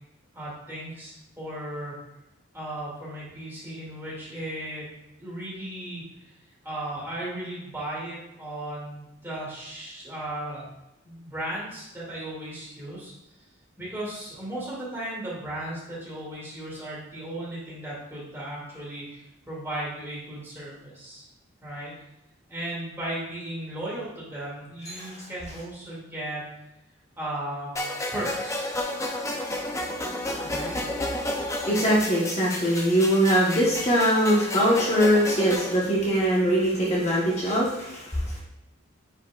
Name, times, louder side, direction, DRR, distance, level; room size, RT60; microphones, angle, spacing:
voice 1, 0.3-2.0 2.5-4.9 5.2-6.0 6.6-10.7 11.0-13.1 13.8-21.2 21.6-21.9 22.5-26.5 27.2-27.8 28.1-28.8 30.4-30.7, right 1 dB, 10° right, -7 dB, 2.3 m, -36 dB
voice 2, 24.9-25.2 31.6-38.4, equal, 30° left, -6 dB, 1.2 m, -22 dB
sound 1, 27.8-35.8, left 1 dB, 15° left, 0.5 m, -31 dB
9.3 x 4.6 x 2.4 m, 0.91 s
head